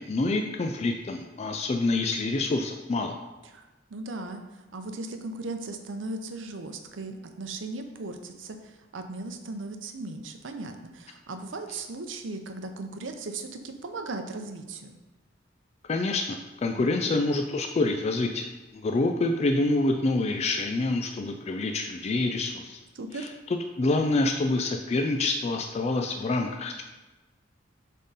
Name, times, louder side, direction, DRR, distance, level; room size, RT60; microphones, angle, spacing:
voice 1, 0.0-3.2 15.9-18.5 18.7-22.8 23.2-23.3 23.8-26.8, left 2 dB, 35° left, 4 dB, 0.4 m, -27 dB
voice 2, 3.4-15.0 16.7-17.1 22.9-23.3, right 2 dB, 80° right, 6 dB, 0.7 m, -37 dB
7.6 x 3.7 x 4.0 m, 1.2 s
head